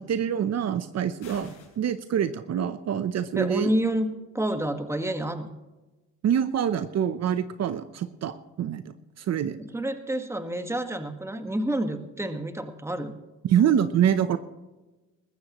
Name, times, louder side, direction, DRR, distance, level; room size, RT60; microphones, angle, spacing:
voice 1, 0.0-3.7 6.2-9.6 13.4-14.4, right 9 dB, 60° right, 12 dB, 0.8 m, -26 dB
sound 1, 1.2-1.8, left 4 dB, 80° left, 6.1 m, -48 dB
voice 2, 3.3-5.5 9.6-13.1, right 1 dB, 10° right, 7 dB, 1.5 m, -29 dB
20.5 x 14.5 x 3.1 m, 1.1 s
cardioid pair, 90°, 30 cm